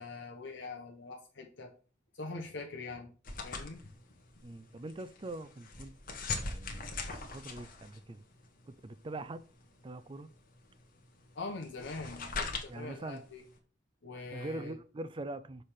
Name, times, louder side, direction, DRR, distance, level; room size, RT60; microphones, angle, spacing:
voice 1, 0.0-1.7 2.1-3.1 3.4-3.8 11.3-13.4 14.0-14.8, left 3 dB, 70° left, 1.0 m, -43 dB
sound 1, 3.2-13.6, left 3 dB, 50° left, 1.3 m, -42 dB
voice 2, 4.4-5.9 6.3-8.2 8.7-9.4 9.8-10.3 12.7-13.2 14.3-15.6, right 2 dB, 25° right, 0.4 m, -43 dB
6.4 x 3.4 x 5.7 m
head